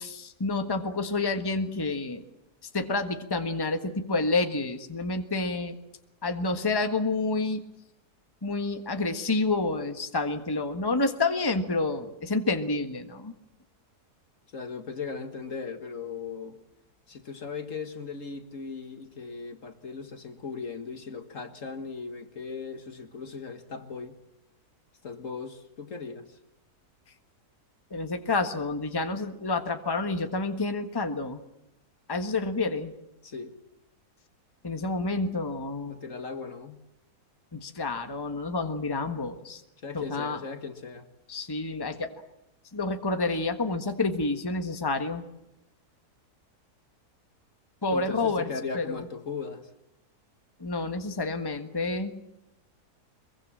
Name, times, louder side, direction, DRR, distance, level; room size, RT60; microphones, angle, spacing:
voice 1, 0.0-2.2 2.7-5.7 6.2-7.6 8.4-13.3 27.9-31.4 32.1-32.9 34.6-36.0 37.5-39.6 39.9-40.4 41.3-42.1 42.7-45.2 47.8-48.5 48.7-49.0 50.6-52.1, left 3 dB, 15° left, 1.5 m, -29 dB
voice 2, 14.5-16.6 17.1-24.2 25.0-26.4 33.2-33.5 35.9-36.8 39.8-41.1 47.9-49.7, left 5 dB, 55° left, 2.0 m, -38 dB
23.0 x 22.5 x 7.5 m
omnidirectional pair, 1.7 m